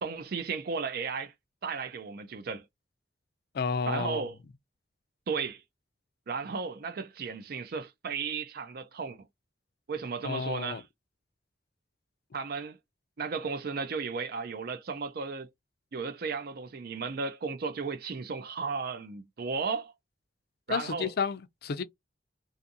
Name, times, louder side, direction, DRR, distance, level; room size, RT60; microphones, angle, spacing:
voice 1, 0.0-1.3 1.6-2.7 3.9-4.3 5.3-5.6 6.3-9.3 9.9-10.8 12.3-12.8 13.2-15.5 15.9-19.9 20.7-21.1, right 5 dB, 60° right, 0.4 m, -34 dB
voice 2, 3.5-4.3 10.2-10.8 20.7-21.8, left 5 dB, 60° left, 0.4 m, -31 dB
2.5 x 2.5 x 2.6 m
head